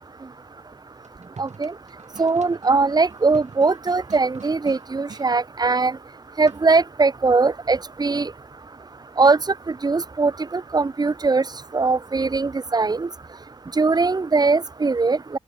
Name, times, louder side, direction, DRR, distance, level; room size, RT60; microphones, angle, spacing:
sound 1, 1.0-5.3 6.5-6.9, right 5 dB, 60° right, 3.0 m, -45 dB
voice 1, 1.4-1.7 2.2-6.0 6.4-8.3 9.2-9.4 9.7-11.4 11.7-13.1 13.8-15.4, right 4 dB, 30° right, 0.7 m, -20 dB
open air
wide cardioid pair, 80°, 14 cm